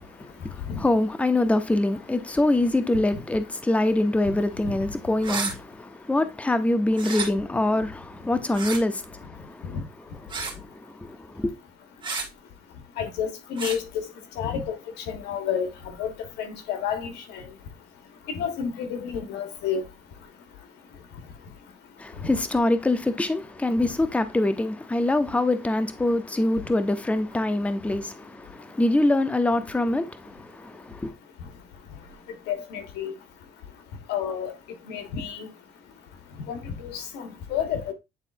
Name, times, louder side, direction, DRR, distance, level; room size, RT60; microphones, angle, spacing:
voice 1, 0.0-9.8 10.3-11.5 22.0-31.1, left 2 dB, 10° left, 0.7 m, -25 dB
sound 1, 5.2-5.5 6.9-7.3 8.5-8.8 10.3-10.6 12.0-12.3 13.6-13.8, right 4 dB, 30° right, 1.7 m, -30 dB
voice 2, 13.0-13.8 14.4-14.8 15.1-15.7 16.0-16.1 16.4-17.4 18.3-19.8 32.5-33.1 34.1-34.5 34.9-35.5 36.5-37.9, left 8 dB, 90° left, 1.3 m, -30 dB
9.2 x 4.0 x 2.6 m
cardioid pair, 110°, 17 cm